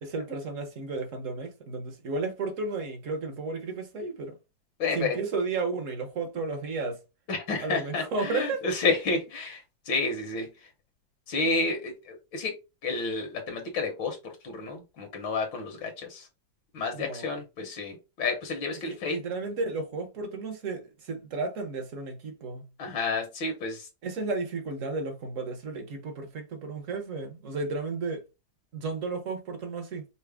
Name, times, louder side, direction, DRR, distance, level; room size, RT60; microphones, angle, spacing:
voice 1, 0.0-4.4 4.9-7.0 7.6-8.6 16.9-17.3 19.1-22.7 24.0-28.2 28.7-30.1, right 3 dB, 50° right, 1.0 m, -33 dB
voice 2, 4.8-5.2 7.3-10.7 11.3-12.6 12.8-16.3 16.7-19.2 22.8-23.9, left 3 dB, 75° left, 1.8 m, -30 dB
5.8 x 2.1 x 3.4 m
omnidirectional pair, 2.1 m